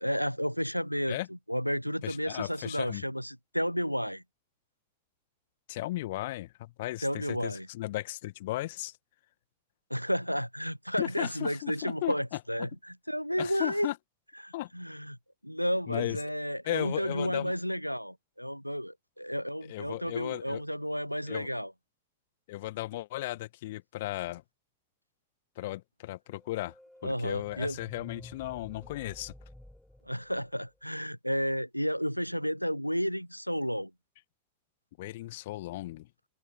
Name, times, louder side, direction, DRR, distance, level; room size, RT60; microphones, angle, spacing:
voice 1, 0.0-1.2 1.5-4.2 7.0-7.7 9.9-13.9 14.4-15.2 15.4-21.7 27.0-27.8 30.1-33.9, equal, 90° left, 0.4 m, -32 dB
voice 2, 2.0-3.0 5.7-8.9 11.0-12.7 13.4-14.0 14.5-14.7 15.9-16.2 16.6-17.5 19.6-20.6 21.3-21.5 22.5-24.4 25.6-26.7 27.0-29.3 35.0-36.1, left 17 dB, 55° left, 1.8 m, -36 dB
sound 1, 26.3-30.9, left 1 dB, 5° left, 3.3 m, -52 dB
open air
figure-of-eight pair, 90°, 0 cm